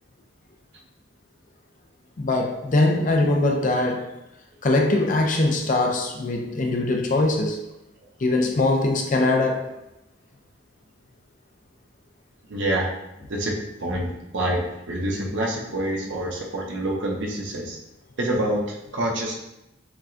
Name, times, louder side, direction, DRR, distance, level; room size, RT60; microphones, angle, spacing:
voice 1, 2.2-4.2 4.6-7.6 8.2-9.7, left 2 dB, 40° left, 2 dB, 0.4 m, -22 dB
voice 2, 12.5-12.9 13.3-14.6 14.9-17.8 18.2-19.4, right 1 dB, 60° right, -1 dB, 0.8 m, -27 dB
5.9 x 2.2 x 2.5 m, 0.88 s
head